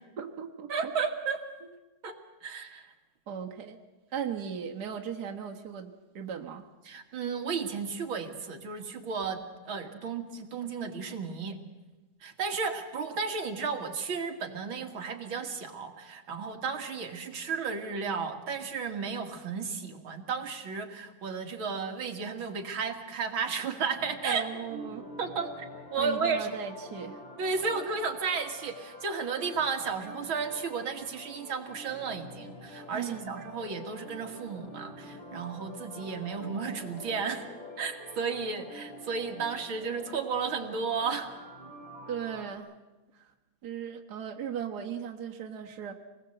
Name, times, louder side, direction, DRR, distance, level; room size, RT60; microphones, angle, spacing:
voice 1, 0.2-0.9 3.3-3.8 4.1-6.7 24.2-25.0 26.0-27.2 32.9-33.4 42.1-42.7 43.1-43.3 43.6-45.9, right 8 dB, 55° right, 2 dB, 1.9 m, -37 dB
voice 2, 0.7-1.4 2.0-2.9 6.9-9.4 9.7-11.6 12.2-24.4 25.2-26.5 27.4-37.5 37.8-41.3, right 5 dB, 90° right, 4 dB, 2.7 m, -33 dB
sound 1, 23.9-42.5, left 1 dB, 75° left, 4.1 m, -47 dB
26.5 x 20.0 x 7.8 m, 1.1 s
omnidirectional pair, 2.1 m